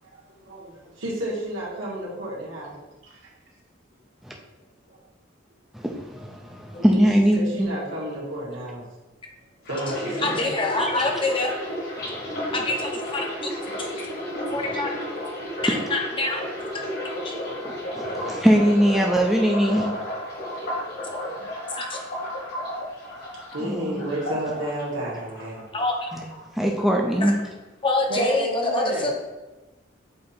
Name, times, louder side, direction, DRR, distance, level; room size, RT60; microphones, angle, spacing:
voice 1, 0.0-2.7 4.9-5.0 6.8-7.1 7.3-8.8 9.7-10.5 16.2-17.6 21.2-21.5 22.1-22.2 23.5-25.7 28.1-29.1, right 1 dB, 85° right, -5 dB, 1.9 m, -32 dB
voice 2, 5.7-7.7 10.8-10.9 12.0-12.5 17.9-19.9 23.6-24.0 26.1-26.2 26.5-27.4, equal, ahead, -1 dB, 0.5 m, -21 dB
sound 1, 9.7-25.6 25.9-26.8 27.1-27.4, equal, 55° left, 1.6 m, -33 dB
voice 3, 10.2-11.5 12.5-13.5 13.8-13.9 14.5-14.9 15.6-16.4 17.2-17.3 21.7-22.0 25.7-26.1 27.2-27.3 27.8-29.1, left 2 dB, 25° left, 1 dB, 0.7 m, -25 dB
7.6 x 2.8 x 4.3 m, 1.1 s
head